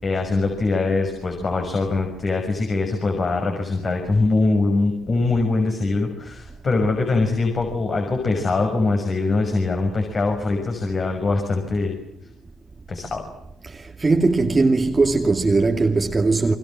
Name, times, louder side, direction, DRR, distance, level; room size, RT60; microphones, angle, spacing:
voice 1, 0.0-12.0 12.9-13.2, left 3 dB, 40° left, 6.3 m, -22 dB
voice 2, 13.7-16.5, right 3 dB, 25° right, 2.5 m, -19 dB
30.0 x 23.5 x 7.7 m
cardioid pair, 90°, 0 cm